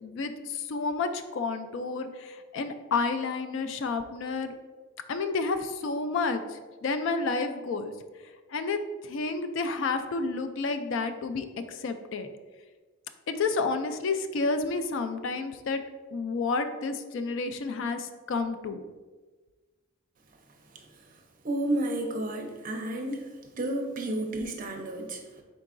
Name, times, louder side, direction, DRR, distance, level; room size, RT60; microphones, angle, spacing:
voice 1, 0.0-4.5 5.1-7.9 8.5-12.3 13.3-15.8 16.1-18.8, left 4 dB, 60° left, 9 dB, 0.3 m, -30 dB
voice 2, 21.4-23.3 23.6-25.4, right 1 dB, 40° right, 3 dB, 0.5 m, -31 dB
4.5 x 3.8 x 2.5 m, 1.3 s
head